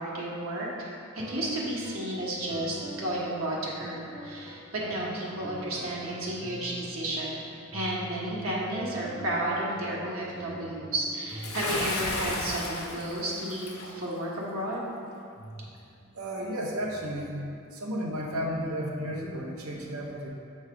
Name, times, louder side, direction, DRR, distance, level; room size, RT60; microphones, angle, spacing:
voice 1, 0.0-7.4 7.7-14.8, right 1 dB, 70° right, -4 dB, 1.2 m, -32 dB
sound 1, 1.2-11.6, right 1 dB, 20° right, 0.4 m, -44 dB
Bathtub (filling or washing) / Splash splatter, 11.4-13.9, left 2 dB, 90° left, 0.8 m, -34 dB
voice 2, 16.1-17.4 17.7-20.3, equal, 85° right, -1 dB, 0.8 m, -33 dB
6.6 x 3.1 x 4.8 m, 2.4 s
head